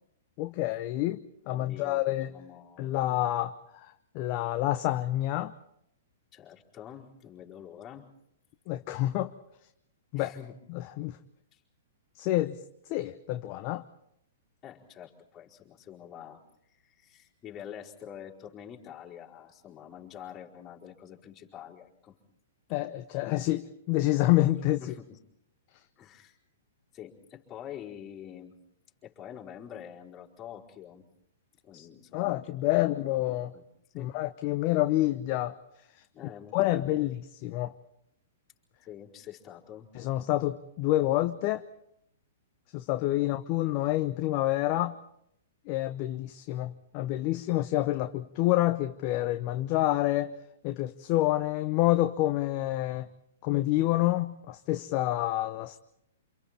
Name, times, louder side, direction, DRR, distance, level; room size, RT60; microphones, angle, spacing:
voice 1, 0.4-2.3 2.8-5.5 8.7-9.3 10.1-10.4 10.7-11.2 12.2-12.6 12.9-13.9 22.7-24.8 31.7-31.9 32.1-33.5 34.0-35.6 36.5-37.7 40.0-41.6 42.7-45.0 45.7-50.3 50.6-53.1 53.4-55.8, left 16 dB, 40° left, 9 dB, 0.8 m, -28 dB
voice 2, 1.4-3.0 6.3-8.1 10.2-10.6 11.5-11.6 14.6-16.4 16.7-22.2 24.8-25.2 26.0-26.4 26.9-28.6 29.0-31.0 31.6-32.4 32.7-33.6 33.9-34.1 36.1-37.0 38.8-39.9 43.2-43.3, left 9 dB, 20° left, -4 dB, 4.7 m, -46 dB
28.5 x 27.0 x 4.4 m, 0.74 s
figure-of-eight pair, 110°, 0 cm